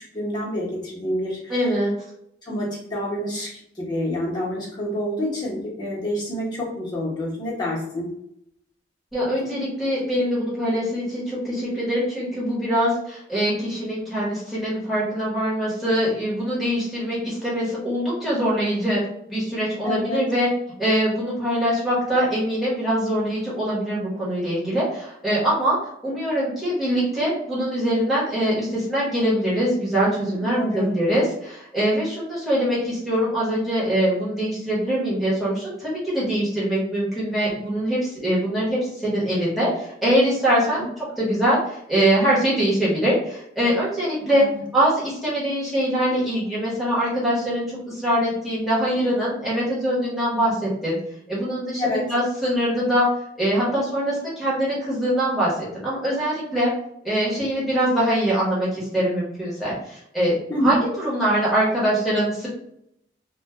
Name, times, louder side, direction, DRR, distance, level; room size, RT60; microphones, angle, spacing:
voice 1, 0.0-1.5 2.4-8.1 19.8-20.2 30.4-30.9 40.7-40.9 44.4-44.6 51.8-52.0 60.5-60.8, left 1 dB, 20° left, -6 dB, 1.0 m, -27 dB
voice 2, 1.5-1.9 9.1-19.0 19.3-20.5 20.8-25.8 26.0-40.9 41.2-44.5 44.7-51.0 51.3-53.1 53.4-56.7 57.0-60.4 60.6-62.5, equal, ahead, -9 dB, 1.1 m, -23 dB
2.4 x 2.2 x 3.5 m, 0.75 s
head